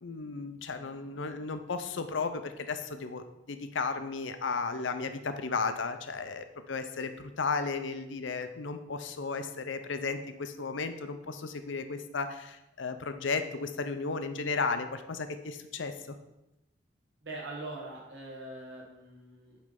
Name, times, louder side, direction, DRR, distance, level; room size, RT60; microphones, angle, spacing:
voice 1, 0.0-16.2, left 4 dB, 75° left, 8 dB, 0.6 m, -34 dB
voice 2, 17.2-19.6, right 2 dB, 70° right, -3 dB, 1.6 m, -42 dB
8.1 x 3.4 x 5.3 m, 0.93 s
head